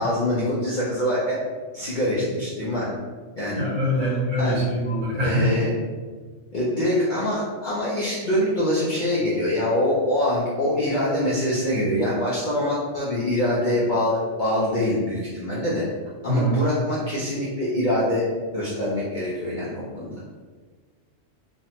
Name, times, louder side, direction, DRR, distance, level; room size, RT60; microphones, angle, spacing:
voice 1, 0.0-1.4 1.7-2.9 3.4-3.6 4.0-4.1 4.4-4.6 5.2-5.7 6.5-15.9 16.2-20.1, left 1 dB, 60° left, -8 dB, 0.5 m, -24 dB
voice 2, 3.5-5.5 16.3-16.6, equal, 70° right, -8 dB, 1.5 m, -23 dB
3.2 x 2.1 x 2.8 m, 1.5 s
omnidirectional pair, 1.4 m